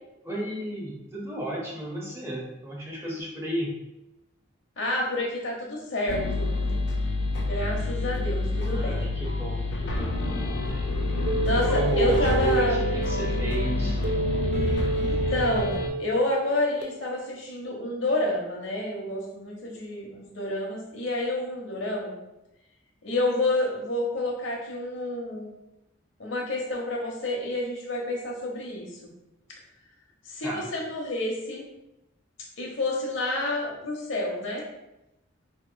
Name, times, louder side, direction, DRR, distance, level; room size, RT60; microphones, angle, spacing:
voice 1, 0.2-3.7 8.7-10.2 11.5-14.0 30.4-30.7, right 2 dB, 15° right, -3 dB, 0.5 m, -32 dB
voice 2, 4.8-6.5 7.3-9.1 11.4-12.8 14.9-22.1 23.0-25.5 26.2-29.0 30.2-31.6 32.6-34.6, left 1 dB, 80° left, -1 dB, 0.8 m, -29 dB
sound 1, 6.1-15.9, left 2 dB, 60° left, 0.4 m, -28 dB
sound 2, 11.3-16.8, right 2 dB, 60° right, 0.5 m, -30 dB
3.5 x 2.9 x 2.2 m, 0.90 s
head